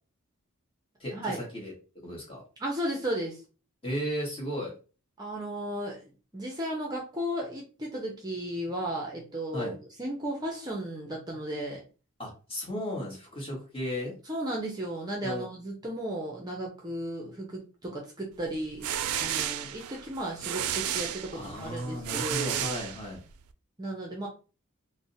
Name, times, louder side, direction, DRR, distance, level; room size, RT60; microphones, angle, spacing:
voice 1, 1.0-1.7 2.0-2.4 3.8-4.7 9.5-9.8 12.2-14.1 15.2-15.5 21.3-23.2, equal, 25° left, -2 dB, 1.1 m, -35 dB
voice 2, 2.6-3.4 5.2-6.0 6.3-9.7 10.0-11.8 14.2-22.7 23.8-24.3, right 1 dB, 20° right, -1 dB, 0.5 m, -34 dB
sound 1, 18.5-23.4, right 10 dB, 85° right, 0.3 m, -33 dB
2.5 x 2.0 x 3.9 m, 0.35 s
head